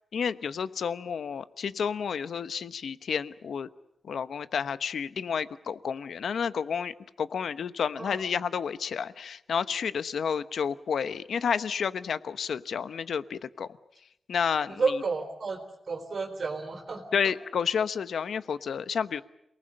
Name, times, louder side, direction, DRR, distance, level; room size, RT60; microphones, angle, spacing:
voice 1, 0.1-3.7 4.0-13.7 14.3-15.0 17.1-19.2, left 7 dB, 75° left, 14 dB, 1.0 m, -30 dB
voice 2, 14.7-17.0, right 4 dB, 50° right, 5 dB, 3.5 m, -31 dB
28.5 x 19.5 x 8.8 m, 0.83 s
wide cardioid pair, 130°, 0 cm